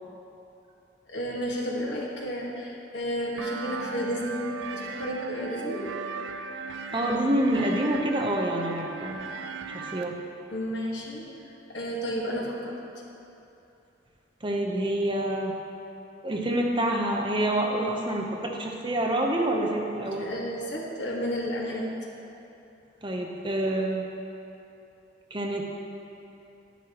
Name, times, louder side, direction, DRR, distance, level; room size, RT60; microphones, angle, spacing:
voice 1, 1.1-5.9 10.5-11.2 11.7-12.8 20.2-21.9, equal, 70° left, -3 dB, 1.5 m, -32 dB
sound 1, 3.4-10.0, right 5 dB, 75° right, 0.4 m, -37 dB
voice 2, 6.9-9.3 9.7-10.2 14.4-15.6 16.2-20.3 23.0-24.1 25.3-25.7, right 1 dB, 25° right, 0 dB, 0.7 m, -27 dB
10.0 x 9.9 x 2.9 m, 2.8 s
head